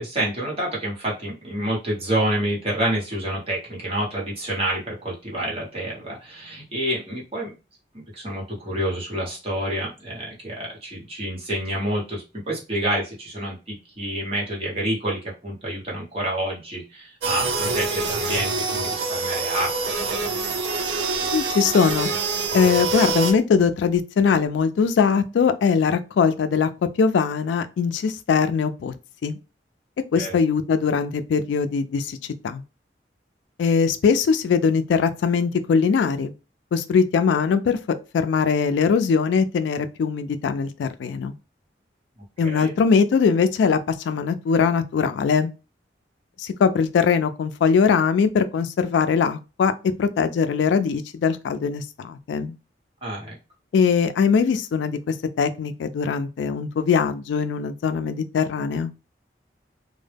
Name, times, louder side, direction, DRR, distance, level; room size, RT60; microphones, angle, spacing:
voice 1, 0.0-7.5 8.1-19.7 20.0-20.2 30.2-30.4 42.4-42.8 53.0-53.4, right 1 dB, 30° right, 1.0 m, -28 dB
sound 1, 17.2-23.3, right 3 dB, 75° right, 0.5 m, -25 dB
voice 2, 21.3-22.1 22.5-26.7 27.0-28.9 29.2-29.4 30.1-32.2 32.4-32.6 33.6-36.3 36.7-37.8 38.1-41.3 42.4-45.5 46.4-49.7 50.0-52.5 53.7-58.9, left 6 dB, 85° left, 0.3 m, -21 dB
2.1 x 2.0 x 3.3 m
head